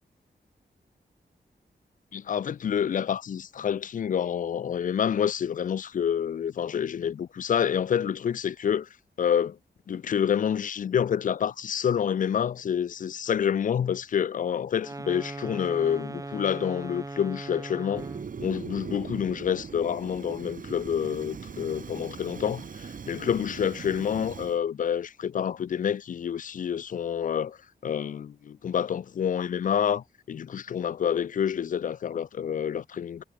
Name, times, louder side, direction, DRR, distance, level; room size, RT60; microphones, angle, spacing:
voice 1, 2.1-8.9 9.2-9.6 9.9-18.1 18.4-27.6 27.8-33.2, left 8 dB, 50° left, 0.4 m, -28 dB
sound 1, 14.7-18.4, right 2 dB, 20° right, 4.1 m, -39 dB
Fire, 17.9-24.6, right 6 dB, 50° right, 1.5 m, -40 dB
wide cardioid pair, 165°, 18 cm